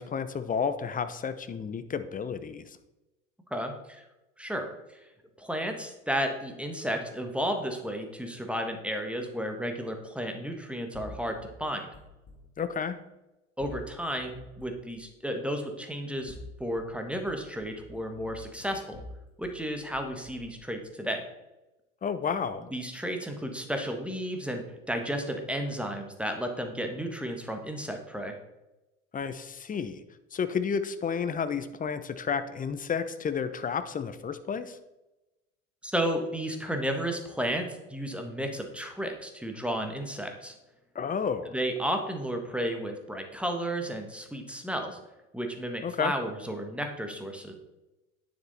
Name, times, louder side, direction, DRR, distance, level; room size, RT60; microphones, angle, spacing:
voice 1, 0.0-2.8 12.6-13.0 22.0-22.6 29.1-30.0 30.3-34.8 40.9-41.5 45.8-46.1, left 6 dB, 20° left, 11 dB, 0.8 m, -31 dB
voice 2, 3.5-4.0 4.4-4.7 5.4-11.8 13.6-16.3 16.6-19.0 19.4-21.2 22.7-28.4 35.8-40.5 41.5-45.0 45.3-47.5, equal, 5° right, 4 dB, 1.5 m, -33 dB
sound 1, 10.9-12.4 13.6-14.9 16.1-16.9 17.3-19.6 19.9-20.6, left 2 dB, 35° left, 2.9 m, -48 dB
9.5 x 7.4 x 4.2 m, 1.0 s
figure-of-eight pair, 75°, 39 cm